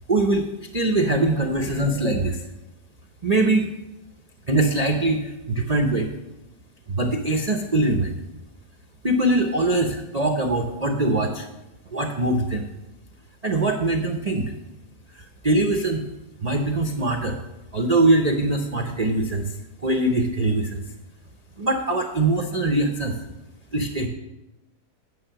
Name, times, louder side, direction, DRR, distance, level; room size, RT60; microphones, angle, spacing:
voice 1, 0.1-0.5 0.7-2.4 3.2-3.7 4.5-6.1 6.9-8.1 9.0-11.5 11.9-12.7 13.4-14.4 15.2-16.0 16.4-17.4 17.7-19.5 19.8-20.8 21.6-23.1 23.7-24.1, right 2 dB, 45° right, 3 dB, 0.5 m, -22 dB
9.6 x 6.6 x 5.7 m, 0.99 s
omnidirectional pair, 1.8 m